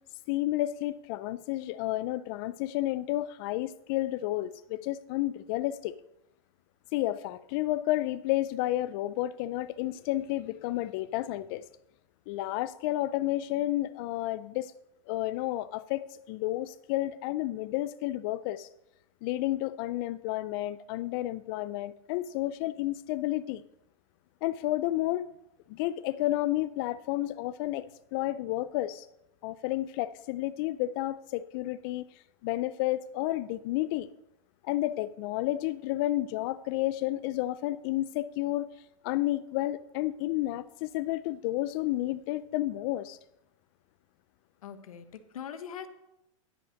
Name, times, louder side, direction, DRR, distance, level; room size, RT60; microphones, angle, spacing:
voice 1, 0.3-6.0 6.9-11.6 12.3-14.7 15.1-18.7 19.2-23.6 24.4-25.3 25.7-27.9 28.1-29.1 29.4-32.1 32.4-34.1 34.6-38.7 39.0-43.2, left 15 dB, 45° left, 14 dB, 0.4 m, -31 dB
voice 2, 44.6-45.9, left 8 dB, 85° left, 10 dB, 1.1 m, -42 dB
10.5 x 5.6 x 6.4 m, 0.86 s
hypercardioid pair, 140°, 18 cm